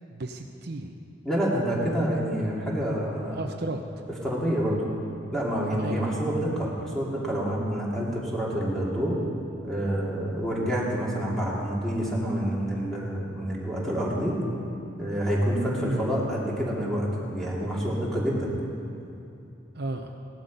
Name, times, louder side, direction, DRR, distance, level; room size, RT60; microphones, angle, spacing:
voice 1, 0.1-1.0 3.3-4.1 5.8-6.2 15.8-16.0 19.7-20.1, right 2 dB, 55° right, 3 dB, 0.7 m, -34 dB
voice 2, 1.2-3.4 4.2-4.8 5.3-9.2 9.6-14.4 15.0-18.5, equal, ahead, -5 dB, 2.5 m, -27 dB
17.0 x 11.5 x 5.3 m, 2.7 s
head